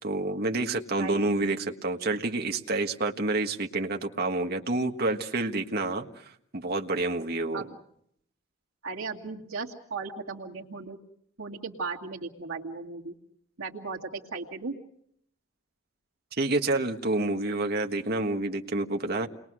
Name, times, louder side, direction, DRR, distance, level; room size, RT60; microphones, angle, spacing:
voice 1, 0.0-7.6 16.4-19.3, right 2 dB, 50° right, 4 dB, 1.6 m, -28 dB
voice 2, 0.9-1.5 7.5-7.7 8.8-11.0 11.4-13.1 13.6-14.7, right 4 dB, 85° right, -2 dB, 2.3 m, -36 dB
29.0 x 21.5 x 6.3 m, 0.70 s
head